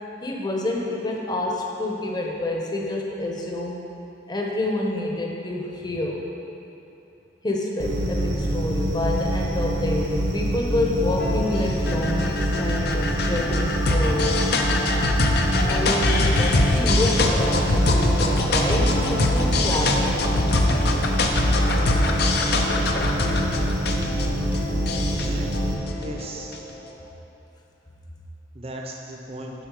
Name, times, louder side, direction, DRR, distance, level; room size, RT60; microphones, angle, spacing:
voice 1, 0.2-3.7 4.3-6.3 7.4-14.5 15.4-20.2, left 1 dB, 25° left, -1 dB, 0.9 m, -28 dB
sound 1, 7.8-25.7, right 1 dB, 85° right, 1.1 m, -25 dB
sound 2, 11.2-26.7, left 2 dB, 60° left, 0.6 m, -24 dB
voice 2, 25.2-25.6 25.9-26.6 28.5-29.5, right 1 dB, 35° right, 1 dB, 0.8 m, -37 dB
7.3 x 6.1 x 4.8 m, 2.9 s
head